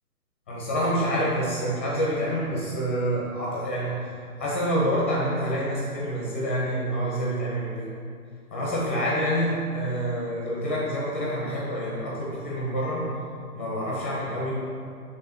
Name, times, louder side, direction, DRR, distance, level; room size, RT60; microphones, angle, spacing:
voice 1, 0.5-3.9 4.4-7.9 8.5-13.1 13.5-14.5, equal, 10° left, -5 dB, 0.6 m, -27 dB
8.3 x 3.7 x 6.6 m, 2.4 s
hypercardioid pair, 160°, 45 cm